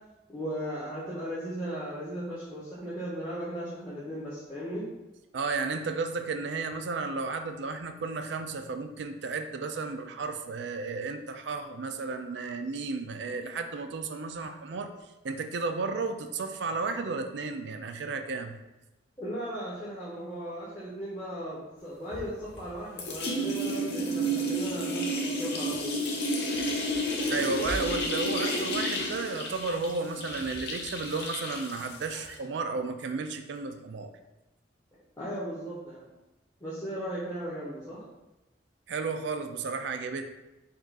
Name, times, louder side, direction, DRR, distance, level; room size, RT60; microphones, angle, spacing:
voice 1, 0.3-4.8 19.2-26.0 35.2-36.0 36.6-38.0, equal, 20° left, -10 dB, 0.9 m, -36 dB
voice 2, 5.3-14.9 15.2-18.6 27.3-34.1 38.9-40.3, right 4 dB, 65° right, 7 dB, 0.4 m, -33 dB
sound 1, 22.1-22.7 23.0-32.3, equal, 60° left, 0.8 m, -31 dB
4.5 x 2.4 x 4.6 m, 1.0 s
head